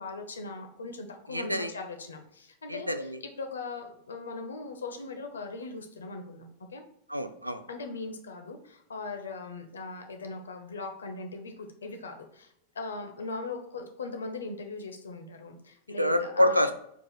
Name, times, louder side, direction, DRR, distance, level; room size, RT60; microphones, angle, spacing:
voice 1, 0.0-2.9 3.4-6.5 6.7-6.8 7.7-16.7, left 3 dB, 70° left, 5 dB, 0.6 m, -39 dB
voice 2, 1.3-1.7 2.7-3.2 7.1-7.6 16.0-16.7, left 1 dB, 85° right, 9 dB, 0.3 m, -26 dB
4.6 x 2.4 x 4.0 m, 0.72 s
figure-of-eight pair, 90°, 0 cm